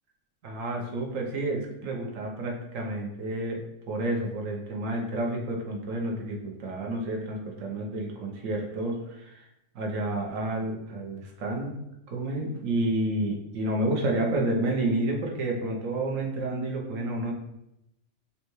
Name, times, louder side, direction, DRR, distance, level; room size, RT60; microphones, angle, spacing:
voice 1, 0.4-9.5 9.7-11.8 12.1-17.3, right 1 dB, 85° right, 0 dB, 1.2 m, -30 dB
5.5 x 2.3 x 3.0 m, 0.84 s
omnidirectional pair, 1.3 m